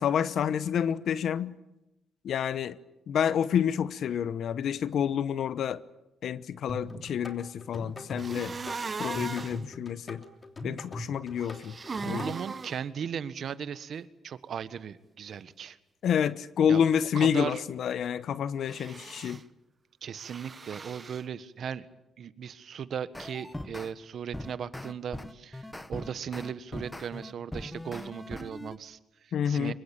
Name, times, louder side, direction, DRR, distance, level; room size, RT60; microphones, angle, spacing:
voice 1, 0.0-1.5 2.2-2.8 3.1-5.8 6.2-8.6 9.0-10.2 10.6-11.8 12.1-12.3 16.0-19.4 29.3-29.7, left 8 dB, 70° left, 0.9 m, -28 dB
sound 1, 6.7-12.3, left 1 dB, 30° left, 3.1 m, -41 dB
sound 2, 8.2-9.6 11.4-12.8 18.6-19.4 20.2-21.2, right 4 dB, 35° right, 1.1 m, -38 dB
voice 2, 12.0-15.8 16.7-16.8 17.1-17.6 20.0-21.9 22.2-29.7, right 8 dB, 60° right, 1.4 m, -37 dB
sound 3, 23.1-23.9 24.3-28.8, left 1 dB, 10° left, 1.4 m, -40 dB
24.5 x 22.0 x 9.0 m
cardioid pair, 85°, 0 cm